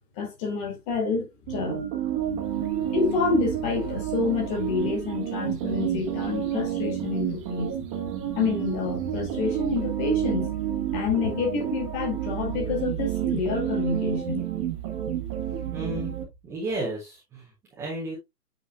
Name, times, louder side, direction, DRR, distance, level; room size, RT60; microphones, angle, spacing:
voice 1, 0.2-1.8 2.9-7.7 8.3-10.5 10.9-14.4, left 5 dB, 20° left, 1.8 m, -28 dB
sound 1, 1.5-16.2, right 10 dB, 20° right, 1.3 m, -30 dB
voice 2, 15.7-16.1 16.4-17.4 17.8-18.2, right 1 dB, 5° right, 0.8 m, -32 dB
8.7 x 4.7 x 2.4 m
figure-of-eight pair, 145°, 47 cm